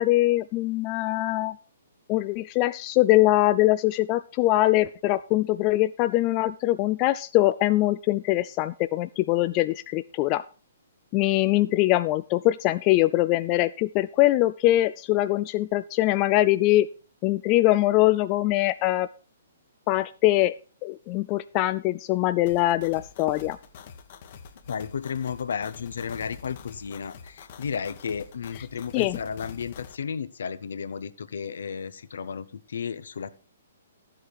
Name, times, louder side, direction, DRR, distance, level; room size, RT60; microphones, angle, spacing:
voice 1, 0.0-1.6 2.1-10.4 11.1-16.9 17.2-19.1 19.9-20.5 20.8-23.6 28.9-29.2, left 17 dB, 35° left, 13 dB, 0.4 m, -22 dB
sound 1, 22.5-30.0, left 6 dB, 50° left, 1.5 m, -46 dB
voice 2, 24.7-33.3, left 6 dB, 70° left, 14 dB, 1.0 m, -33 dB
13.0 x 7.6 x 4.7 m, 0.38 s
hypercardioid pair, 130°, 0 cm